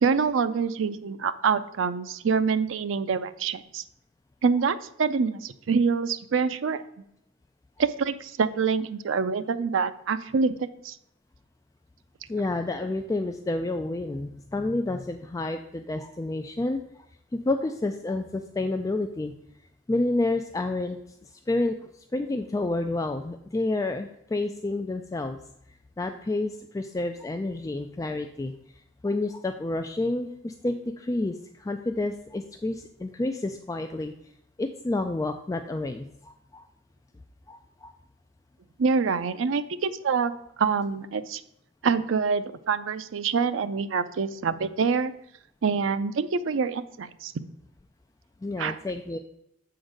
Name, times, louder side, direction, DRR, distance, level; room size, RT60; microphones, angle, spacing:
voice 1, 0.0-3.8 4.4-6.8 7.8-11.0 38.8-40.3 40.6-41.4 41.8-45.1 45.6-47.3 48.6-48.8, right 5 dB, 80° right, 12 dB, 0.5 m, -26 dB
voice 2, 12.3-16.8 17.3-19.3 19.9-25.4 26.0-28.5 29.0-34.1 34.6-36.7 37.5-37.9 48.4-49.2, left 2 dB, 15° left, 6 dB, 0.3 m, -29 dB
7.0 x 3.9 x 6.5 m, 0.78 s
head